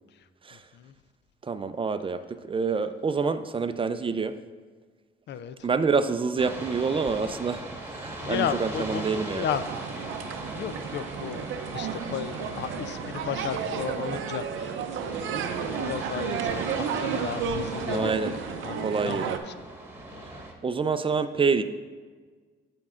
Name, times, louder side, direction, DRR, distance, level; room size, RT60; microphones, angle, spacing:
voice 1, 1.4-2.2 2.5-4.3 5.6-9.5 17.9-18.3 18.8-19.4 20.6-21.6, right 5 dB, 25° right, 10 dB, 0.4 m, -27 dB
voice 2, 5.3-5.7 8.2-9.6 10.5-11.5 11.7-19.6 20.1-20.4, left 9 dB, 65° left, 13 dB, 0.4 m, -34 dB
sound 1, 6.4-20.5, right 1 dB, 10° right, 1.4 m, -39 dB
sound 2, 9.5-19.4, right 7 dB, 85° right, 0.6 m, -32 dB
14.5 x 5.3 x 2.4 m, 1.5 s
cardioid pair, 90°, 20 cm